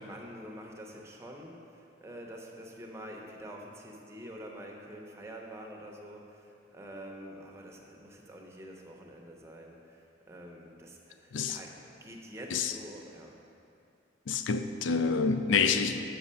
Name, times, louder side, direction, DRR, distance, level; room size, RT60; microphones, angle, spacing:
voice 1, 0.0-1.6 2.0-10.0 10.3-13.4, equal, 15° right, 0 dB, 0.7 m, -46 dB
voice 2, 14.3-16.0, left 5 dB, 80° left, 9 dB, 0.4 m, -27 dB
6.1 x 5.9 x 5.5 m, 2.6 s
head